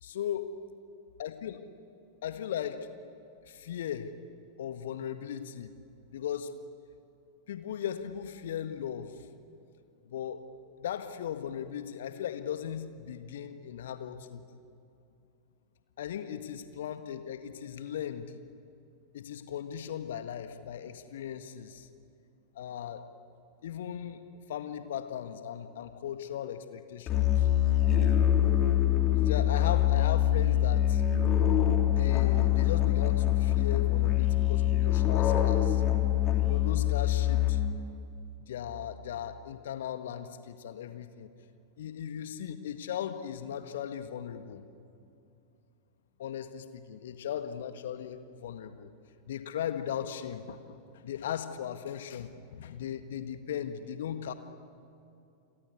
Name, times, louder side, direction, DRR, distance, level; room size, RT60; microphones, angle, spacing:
voice 1, 0.0-0.5 1.2-1.6 2.2-2.9 3.5-4.1 4.6-5.7 6.1-6.5 7.5-9.1 10.1-10.5 10.8-14.4 16.0-18.3 19.1-21.9 22.5-23.0 23.6-24.2 24.5-27.5 29.1-31.0 31.9-35.8 36.4-37.6 38.5-41.3 41.8-44.7 46.2-48.9 49.3-50.8 51.0-54.3, left 9 dB, 60° left, 9 dB, 1.6 m, -37 dB
Musical instrument, 27.1-37.9, left 12 dB, 30° left, 3.7 m, -25 dB
29.0 x 22.5 x 8.4 m, 2.7 s
figure-of-eight pair, 90°, 0 cm